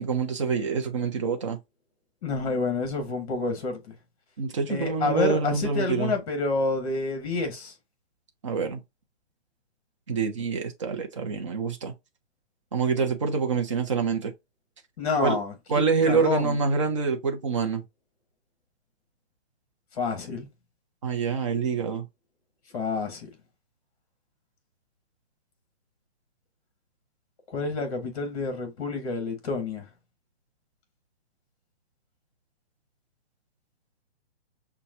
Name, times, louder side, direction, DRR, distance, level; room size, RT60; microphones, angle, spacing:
voice 1, 0.0-1.6 4.4-6.1 8.4-8.8 10.1-11.9 12.7-14.3 15.2-15.4 15.7-17.8 21.0-22.1, right 5 dB, 30° right, 0.6 m, -26 dB
voice 2, 2.2-3.9 4.7-7.7 15.0-16.6 20.0-20.5 22.7-23.3 27.5-29.8, left 3 dB, 35° left, 1.5 m, -28 dB
5.6 x 2.3 x 2.6 m
hypercardioid pair, 165°, 33 cm